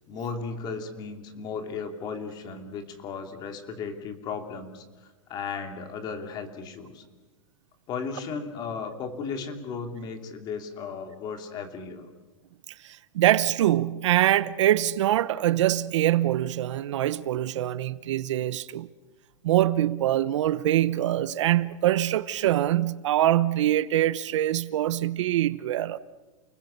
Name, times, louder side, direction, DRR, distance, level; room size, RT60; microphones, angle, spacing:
voice 1, 0.1-4.8 5.3-7.0 7.9-12.1, left 5 dB, 25° left, 2.7 m, -35 dB
voice 2, 12.8-18.9 19.4-26.0, right 13 dB, 65° right, 0.9 m, -24 dB
29.5 x 20.0 x 6.9 m
supercardioid pair, 165°, 17 cm